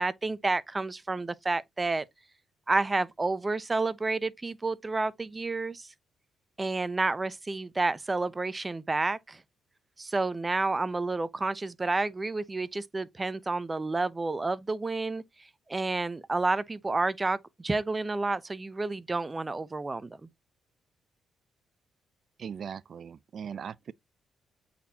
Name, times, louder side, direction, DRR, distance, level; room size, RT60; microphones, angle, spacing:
voice 1, 0.0-2.1 2.7-5.9 6.6-9.4 10.0-20.3, right 3 dB, 25° right, 0.8 m, -30 dB
voice 2, 22.4-23.9, right 7 dB, 60° right, 0.5 m, -39 dB
8.2 x 4.4 x 2.9 m
supercardioid pair, 55°, 0 cm